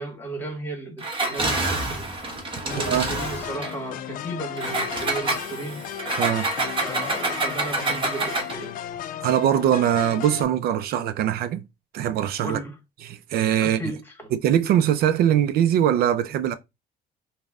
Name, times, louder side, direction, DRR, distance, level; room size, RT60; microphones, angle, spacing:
voice 1, 0.0-2.1 2.6-5.8 6.8-8.7 12.4-12.7 13.6-14.3, right 2 dB, 10° left, 1.4 m, -34 dB
Engine, 1.0-3.8 4.6-8.6, right 2 dB, 30° right, 1.1 m, -27 dB
sound 1, 2.7-10.4, left 10 dB, 55° left, 0.5 m, -35 dB
voice 2, 2.8-3.1 6.2-6.5 9.2-11.6 11.9-12.6 13.0-13.8 14.3-16.5, right 10 dB, 65° right, 0.4 m, -22 dB
5.2 x 2.1 x 2.4 m
cardioid pair, 110°, 17 cm